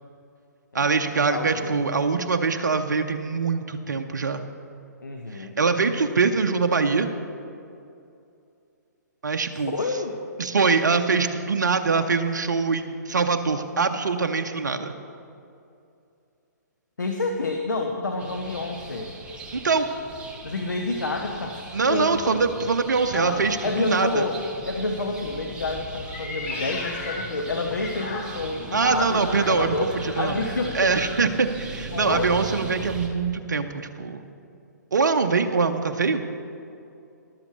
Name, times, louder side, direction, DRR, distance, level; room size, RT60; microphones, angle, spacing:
voice 1, 0.7-4.5 5.3-7.1 9.2-9.7 10.4-14.9 19.5-19.9 21.7-24.2 28.7-30.3 30.7-34.3 34.9-36.2, right 4 dB, 75° right, 6 dB, 0.7 m, -23 dB
voice 2, 1.3-1.8 5.0-5.5 5.9-6.0 9.7-10.2 17.0-19.1 20.4-21.6 21.9-22.4 23.1-24.4 24.6-31.1 31.9-32.3, left 3 dB, 80° left, 3 dB, 0.9 m, -29 dB
sound 1, 18.2-33.1, right 3 dB, 10° right, 1.2 m, -39 dB
Meow, 26.1-28.6 29.2-31.2, left 3 dB, 45° left, 1.6 m, -37 dB
13.5 x 12.0 x 3.2 m, 2.6 s
figure-of-eight pair, 130°, 10 cm